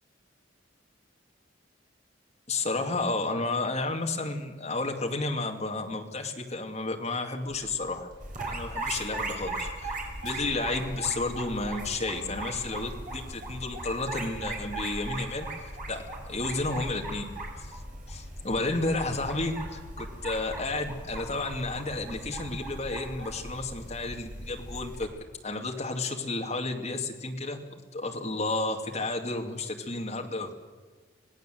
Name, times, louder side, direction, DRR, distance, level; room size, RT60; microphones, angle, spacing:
voice 1, 2.5-8.1 8.5-17.3 17.6-17.8 18.1-25.1 25.4-27.6 27.9-30.6, left 2 dB, 35° left, 2 dB, 2.5 m, -32 dB
sound 1, 7.4-12.5, equal, 65° right, 5.7 m, -55 dB
sound 2, 8.2-25.0, right 2 dB, 40° right, 5.1 m, -38 dB
26.0 x 17.5 x 7.9 m, 1.4 s
head